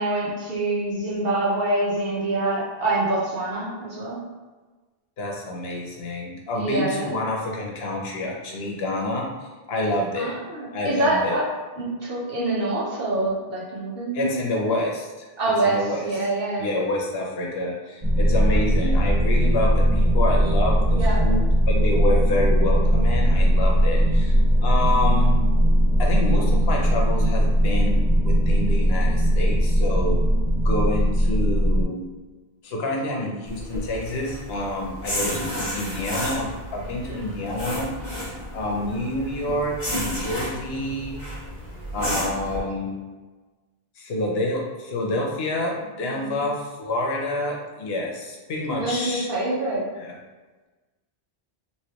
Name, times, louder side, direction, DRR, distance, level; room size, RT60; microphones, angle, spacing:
voice 1, 0.0-4.2 6.5-7.1 10.2-11.4 11.8-14.7 15.4-16.7 18.5-18.6 20.9-21.3 46.0-46.4 48.8-49.9, right 2 dB, 65° right, -7 dB, 1.3 m, -26 dB
voice 2, 5.2-9.3 9.7-10.3 10.7-11.4 14.1-15.3 15.6-16.1 16.6-24.3 24.6-25.4 26.0-30.2 30.6-32.1 32.6-37.9 38.5-41.2 41.9-43.0 44.0-49.3 50.0-50.1, left 1 dB, 75° left, -1 dB, 0.9 m, -28 dB
sound 1, 18.0-31.9, equal, 40° right, 0.4 m, -19 dB
sound 2, 33.4-42.6, equal, 25° left, 1.2 m, -32 dB
3.2 x 2.9 x 2.9 m, 1.3 s
omnidirectional pair, 1.0 m